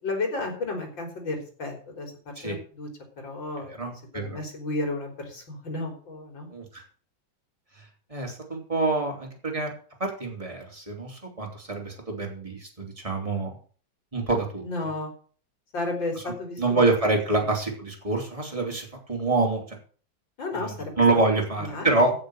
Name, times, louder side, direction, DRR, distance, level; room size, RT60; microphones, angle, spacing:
voice 1, 0.0-2.1 2.4-2.9 3.2-3.7 4.1-6.5 14.6-15.1 15.7-16.9 17.3-17.5 20.4-21.0 21.6-22.1, left 2 dB, 70° left, 3 dB, 4.6 m, -32 dB
voice 2, 3.7-4.4 6.5-6.8 8.1-9.7 10.0-13.5 14.1-14.6 16.2-19.8 20.6-20.7 21.0-22.1, right 3 dB, 15° right, 1 dB, 3.4 m, -26 dB
15.5 x 6.8 x 6.5 m, 0.43 s
omnidirectional pair, 2.1 m